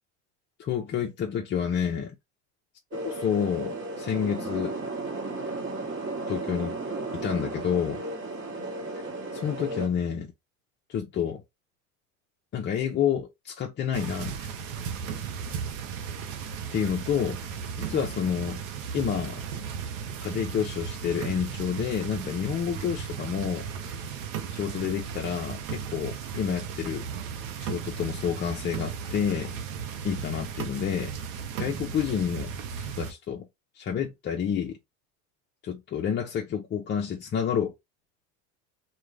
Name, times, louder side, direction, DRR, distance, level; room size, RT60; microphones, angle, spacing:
voice 1, 0.6-2.1 3.2-4.7 6.3-6.8 7.1-8.0 9.3-10.3 10.9-11.4 12.5-14.5 16.7-18.6 18.9-19.4 20.2-23.7 24.5-27.0 27.6-29.5 30.0-31.1 31.6-33.4 33.8-34.8 35.6-37.7, left 8 dB, 30° left, 0.5 m, -29 dB
sound 1, 2.9-9.9, right 2 dB, 30° right, 1.2 m, -34 dB
sound 2, 13.9-33.1, right 7 dB, 85° right, 0.7 m, -36 dB
2.4 x 2.3 x 3.1 m
supercardioid pair, 100°, 39 cm